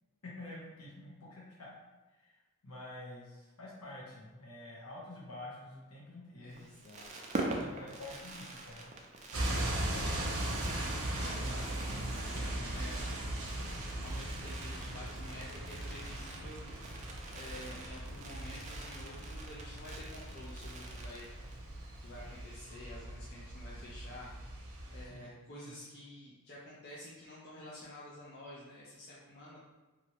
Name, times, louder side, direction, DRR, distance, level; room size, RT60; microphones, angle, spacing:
voice 1, 0.2-1.7 2.1-2.4 2.6-6.6 7.6-8.9 25.0-25.7, left 1 dB, 90° left, -6 dB, 0.8 m, -48 dB
voice 2, 6.4-7.1 11.2-13.1 14.0-16.6 17.3-21.3 22.0-24.3 24.9-29.6, left 1 dB, 45° left, -6 dB, 0.4 m, -50 dB
Fireworks, 6.5-21.7 22.0-22.1 22.3-22.5, right 2 dB, 35° right, 0.3 m, -45 dB
sound 1, 9.3-25.0, right 1 dB, 75° right, 0.6 m, -39 dB
2.9 x 2.5 x 2.8 m, 1.2 s
head